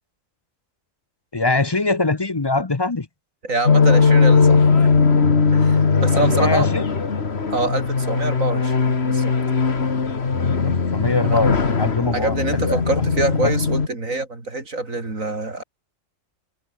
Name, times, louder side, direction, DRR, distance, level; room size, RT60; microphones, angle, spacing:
voice 1, 1.3-3.1 6.1-6.8 10.6-12.8 13.4-13.5, left 3 dB, 25° left, 0.7 m, -23 dB
voice 2, 3.4-4.9 5.5-6.7 7.5-9.3 11.2-11.4 12.1-15.6, right 3 dB, 85° right, 4.6 m, -26 dB
sound 1, 3.7-13.9, left 4 dB, 55° left, 2.0 m, -18 dB
omnidirectional pair, 1.4 m